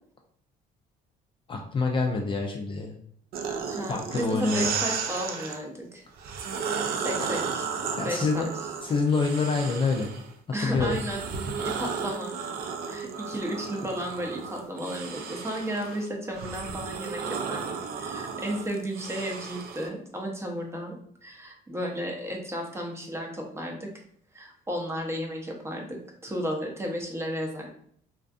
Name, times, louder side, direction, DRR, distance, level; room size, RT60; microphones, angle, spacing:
voice 1, 1.5-2.9 3.9-4.7 7.2-7.3 8.0-8.5 8.8-10.1 10.6-10.9, left 4 dB, 30° left, 2 dB, 0.3 m, -26 dB
sound 1, 3.3-5.6 6.2-10.3 10.7-19.9, right 5 dB, 65° right, 0.4 m, -34 dB
voice 2, 3.7-6.0 6.9-7.6 8.0-8.5 10.5-11.2 11.6-12.3 12.9-23.9 24.3-27.7, equal, 15° right, 1 dB, 0.6 m, -33 dB
2.5 x 2.4 x 2.3 m, 0.63 s
cardioid pair, 110°, 17 cm